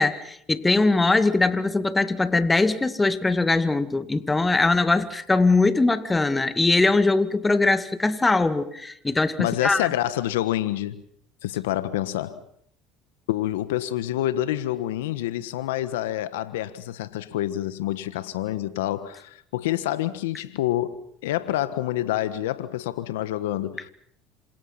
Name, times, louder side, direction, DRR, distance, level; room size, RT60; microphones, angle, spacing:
voice 1, 0.0-9.9, left 3 dB, 15° left, 2.1 m, -21 dB
voice 2, 9.4-11.0 11.4-12.4 13.3-21.0 21.2-23.9, left 13 dB, 85° left, 1.4 m, -27 dB
27.5 x 27.0 x 5.9 m
supercardioid pair, 90°, 0 cm